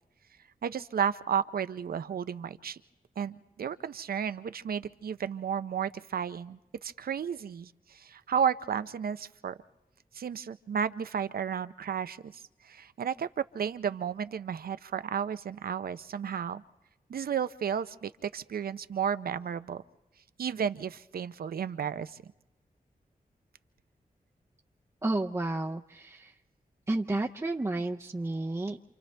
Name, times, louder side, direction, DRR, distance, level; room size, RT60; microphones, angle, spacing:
voice 1, 0.6-2.8 3.2-9.5 10.1-16.6 17.1-19.8 20.4-22.2, right 7 dB, 80° right, 13 dB, 0.6 m, -33 dB
voice 2, 25.0-26.3 26.9-28.8, right 2 dB, 20° right, 0 dB, 0.6 m, -31 dB
28.5 x 27.5 x 3.4 m, 0.98 s
wide cardioid pair, 120°, 15 cm